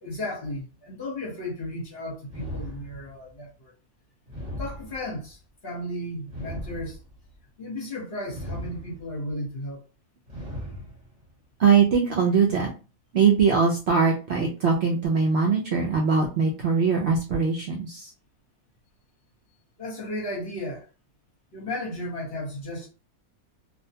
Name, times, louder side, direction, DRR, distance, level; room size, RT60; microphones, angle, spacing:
voice 1, 0.0-3.7 4.6-7.0 7.6-9.8 19.8-20.9 21.5-22.9, left 1 dB, 50° left, 1.1 m, -34 dB
sound 1, 2.3-3.3 4.3-5.3 6.3-7.3 8.3-9.3 10.3-11.3, equal, 35° right, 1.1 m, -38 dB
voice 2, 11.6-12.7 13.1-18.1, right 5 dB, 65° right, 0.7 m, -21 dB
2.5 x 2.1 x 2.7 m
omnidirectional pair, 1.5 m